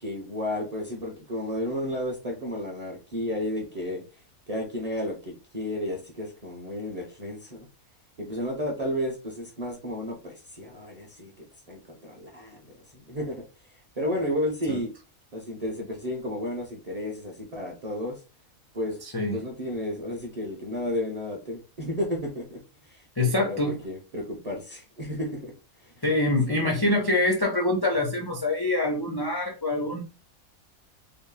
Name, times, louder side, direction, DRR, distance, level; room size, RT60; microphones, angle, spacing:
voice 1, 0.0-4.0 4.5-7.6 8.2-11.3 11.7-12.6 13.1-13.4 14.0-14.9 15.3-18.2 18.7-19.0 19.3-25.5 25.8-25.9 26.5-26.8, left 1 dB, 35° right, -1 dB, 0.7 m, -32 dB
voice 2, 19.0-19.4 23.2-23.8 26.0-30.0, left 2 dB, 40° left, -1 dB, 0.3 m, -25 dB
3.8 x 2.1 x 3.7 m, 0.31 s
omnidirectional pair, 1.5 m